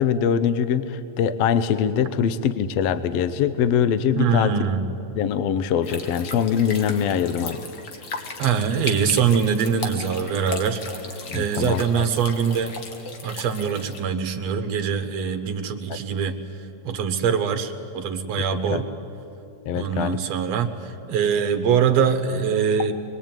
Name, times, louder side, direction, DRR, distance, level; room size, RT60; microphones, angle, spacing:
voice 1, 0.0-4.7 5.2-7.6 11.3-12.0 15.9-16.0 18.7-18.8 19.7-20.2, left 8 dB, 70° left, 13 dB, 1.8 m, -23 dB
voice 2, 4.2-4.8 8.4-10.8 11.3-12.7 13.2-16.4 16.8-18.9 19.7-22.9, right 7 dB, 65° right, 9 dB, 2.3 m, -23 dB
sound 1, 5.8-14.0, left 3 dB, 45° left, 2.1 m, -36 dB
24.5 x 21.5 x 9.0 m, 2.8 s
omnidirectional pair, 3.3 m